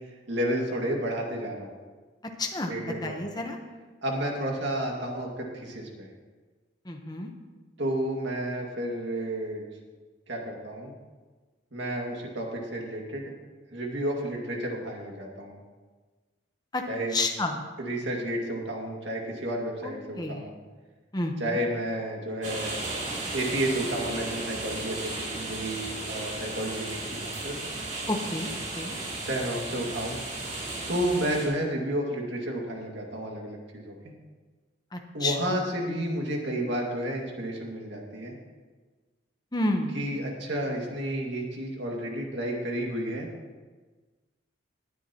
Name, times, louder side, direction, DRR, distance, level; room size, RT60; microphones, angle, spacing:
voice 1, 0.3-1.7 2.7-3.4 4.0-6.1 7.8-9.6 10.3-10.9 11.7-13.3 13.7-15.6 16.9-17.2 17.8-20.6 21.4-22.8 23.3-27.6 29.3-30.2 30.9-34.0 35.1-38.3 39.9-43.3, right 1 dB, 60° right, 0 dB, 2.2 m, -31 dB
voice 2, 2.4-2.8 3.0-3.6 6.9-7.3 16.7-16.8 17.1-17.6 19.8-20.4 21.1-21.6 28.1-28.5 28.8-29.0 34.9-35.3 39.5-39.9, left 2 dB, 20° left, 3 dB, 1.0 m, -30 dB
sound 1, 22.4-31.5, right 2 dB, 35° right, 2.8 m, -35 dB
19.5 x 9.1 x 3.0 m, 1.3 s
head